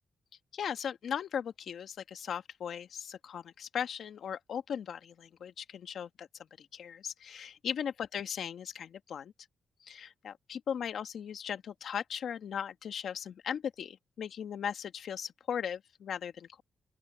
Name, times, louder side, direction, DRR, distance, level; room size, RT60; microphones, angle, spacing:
voice 1, 0.5-6.3 6.6-9.3 9.8-16.6, left 8 dB, 70° left, 1.6 m, -38 dB
open air
cardioid pair, 65°, 0 cm